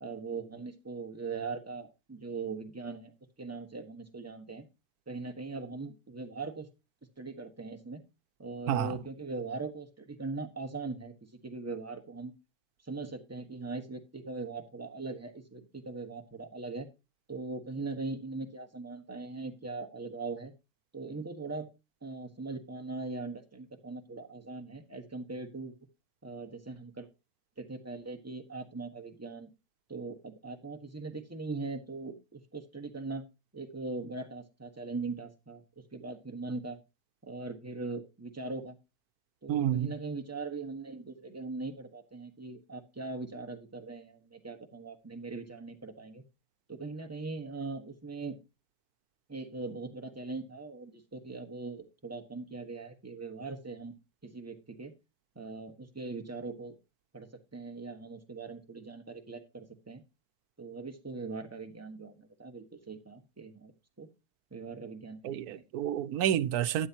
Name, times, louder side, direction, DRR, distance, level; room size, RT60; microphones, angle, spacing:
voice 1, 0.0-3.1 3.4-4.7 5.1-6.7 7.2-8.0 8.4-11.1 11.4-12.3 12.8-16.9 17.3-20.5 20.9-21.7 22.0-25.7 26.2-27.1 27.6-29.5 29.9-33.2 33.5-35.6 35.9-36.8 37.3-38.8 39.4-46.2 46.7-48.3 49.3-53.9 54.2-54.9 55.3-56.7 57.1-60.0 60.6-63.7 64.0-64.1 64.5-65.6, right 3 dB, 10° right, 1.2 m, -40 dB
voice 2, 39.5-39.9 65.2-66.9, right 10 dB, 85° right, 1.2 m, -29 dB
12.5 x 8.7 x 2.8 m
omnidirectional pair, 1.6 m